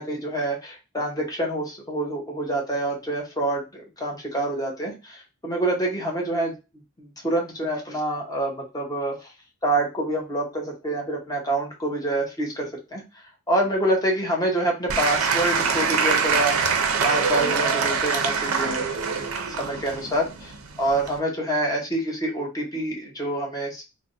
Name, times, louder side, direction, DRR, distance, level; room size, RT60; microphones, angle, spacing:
voice 1, 0.0-6.5 7.0-9.1 9.6-13.0 13.5-18.9 19.1-23.8, right 1 dB, 15° left, -1 dB, 0.9 m, -27 dB
Applause / Crowd, 14.9-21.2, right 5 dB, 70° right, 0.5 m, -24 dB
3.3 x 2.1 x 2.6 m, 0.27 s
head